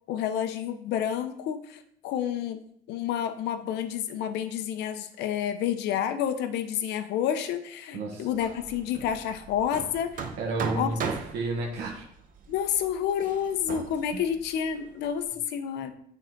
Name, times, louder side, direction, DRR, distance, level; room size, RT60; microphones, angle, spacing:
voice 1, 0.1-2.6 2.9-10.3 10.8-10.9 12.5-15.9, left 9 dB, 85° left, 9 dB, 0.7 m, -29 dB
voice 2, 7.9-8.3 10.4-12.1 14.1-14.2, right 2 dB, 80° right, 1 dB, 1.3 m, -32 dB
Hammer, 8.3-15.2, right 5 dB, 55° right, 0.9 m, -38 dB
7.5 x 3.9 x 4.5 m, 0.67 s
cardioid pair, 110°, 17 cm